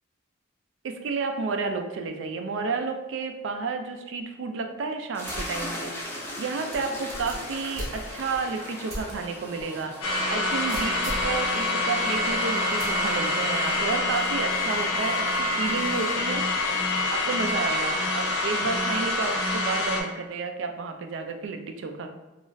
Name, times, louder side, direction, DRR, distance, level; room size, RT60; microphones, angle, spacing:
voice 1, 0.8-5.9 6.4-9.9 10.3-16.5 17.1-22.1, right 4 dB, 70° right, 5 dB, 0.3 m, -31 dB
sound 1, 5.1-16.2, left 1 dB, 10° left, 0.4 m, -40 dB
sound 2, 5.2-5.6 6.0-6.1 6.7-8.4 8.9-9.1 9.6-9.7 10.7-11.4 12.8-13.1, right 1 dB, 85° right, 0.8 m, -37 dB
sound 3, 10.0-20.0, left 2 dB, 85° left, 0.5 m, -26 dB
2.4 x 2.1 x 3.8 m, 1.1 s
head